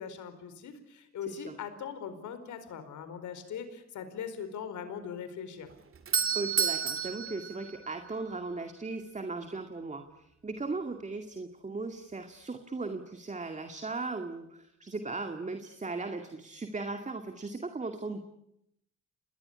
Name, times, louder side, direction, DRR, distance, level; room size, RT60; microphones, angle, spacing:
voice 1, 0.0-5.7, left 7 dB, 75° left, 10 dB, 4.7 m, -40 dB
Doorbell, 5.7-8.5, right 7 dB, 45° right, 2.7 m, -31 dB
voice 2, 6.3-18.3, right 3 dB, 25° right, 6 dB, 2.3 m, -37 dB
28.0 x 20.5 x 10.0 m, 0.82 s
cardioid pair, 90°, 30 cm